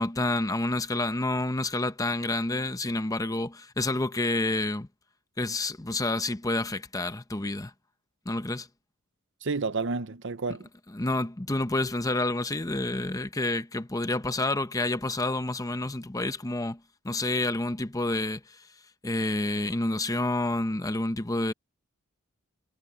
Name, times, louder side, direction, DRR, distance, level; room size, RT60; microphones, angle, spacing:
voice 1, 0.0-4.9 5.4-7.7 8.3-8.7 10.9-16.8 17.0-18.6 19.0-21.5, left 2 dB, 15° left, 0.8 m, -29 dB
voice 2, 9.4-10.6, right 4 dB, 60° right, 0.8 m, -30 dB
head